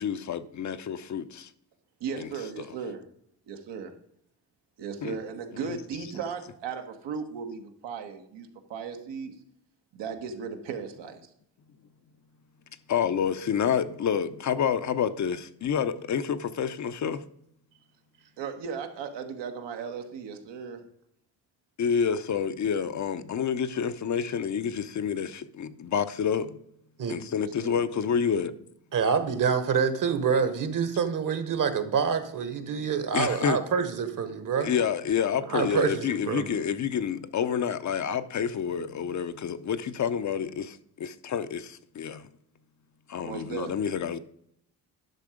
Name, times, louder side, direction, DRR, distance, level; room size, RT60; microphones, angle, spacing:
voice 1, 0.0-1.5 2.2-2.3 5.0-5.2 5.6-5.8 12.9-17.2 21.8-26.6 27.1-28.5 33.1-33.6 34.6-42.3 43.1-44.2, left 7 dB, 45° left, 0.6 m, -28 dB
voice 2, 2.0-3.0 3.5-3.9 4.8-9.3 9.9-11.3 18.4-20.8 27.4-27.8 43.2-43.7, right 6 dB, 80° right, 1.4 m, -36 dB
voice 3, 28.9-34.7 35.5-36.5, right 6 dB, 50° right, 1.3 m, -27 dB
10.5 x 5.7 x 5.0 m
cardioid pair, 100°, 42 cm